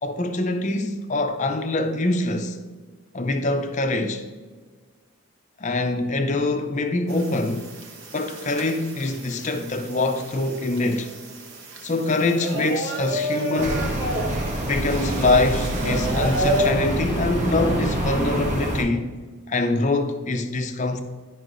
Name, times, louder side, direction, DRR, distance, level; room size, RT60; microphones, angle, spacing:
voice 1, 0.0-2.6 3.1-4.2 5.6-7.7 8.1-11.1 11.8-14.0 14.7-19.1 19.5-21.0, left 2 dB, 35° left, 0.5 m, -24 dB
sound 1, 7.1-16.7, right 1 dB, 60° right, 1.0 m, -31 dB
sound 2, 13.6-18.8, right 1 dB, 35° right, 0.9 m, -26 dB
11.0 x 5.5 x 2.5 m
head